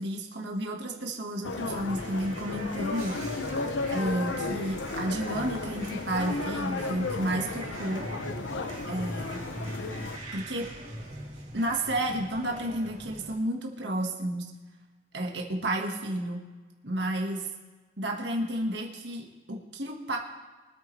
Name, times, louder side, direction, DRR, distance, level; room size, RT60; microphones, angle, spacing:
voice 1, 0.0-3.2 3.9-8.0 8.9-9.4 10.3-10.7 11.5-14.5 15.1-16.4 16.8-17.5 18.0-20.2, right 1 dB, 70° right, 1 dB, 1.6 m, -31 dB
sound 1, 1.4-10.2, left 3 dB, 85° left, 0.7 m, -34 dB
sound 2, 1.5-13.3, right 1 dB, 35° right, 3.2 m, -41 dB
23.5 x 9.4 x 3.3 m, 1.3 s
head